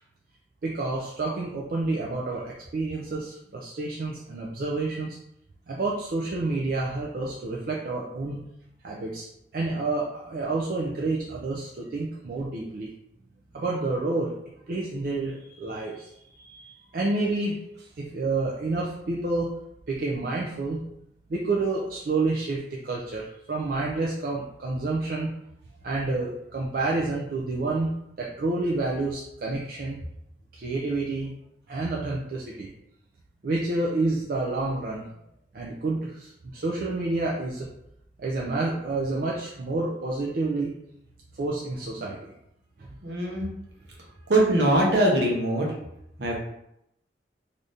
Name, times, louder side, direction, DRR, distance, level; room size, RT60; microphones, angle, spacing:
voice 1, 0.6-5.2 5.7-8.4 8.8-9.3 9.5-12.9 13.5-14.3 14.7-16.1 16.4-17.6 18.0-19.5 19.9-20.8 21.3-25.3 25.8-30.0 30.5-31.3 31.7-32.7 33.4-35.1 35.5-37.7 38.2-40.7 41.4-42.2, right 2 dB, 55° right, -3 dB, 0.4 m, -29 dB
voice 2, 43.0-43.5 44.3-45.7 46.2-46.4, right 1 dB, 70° right, -1 dB, 0.8 m, -22 dB
3.4 x 2.5 x 2.6 m, 0.79 s
head